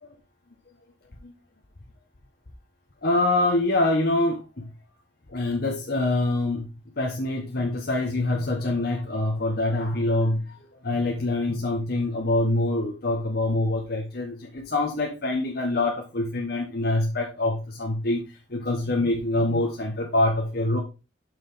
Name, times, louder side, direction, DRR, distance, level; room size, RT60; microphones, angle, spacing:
voice 1, 3.0-4.7 5.3-6.7 7.0-20.8, left 2 dB, 55° left, 0 dB, 1.3 m, -25 dB
7.0 x 6.2 x 3.6 m, 0.29 s
head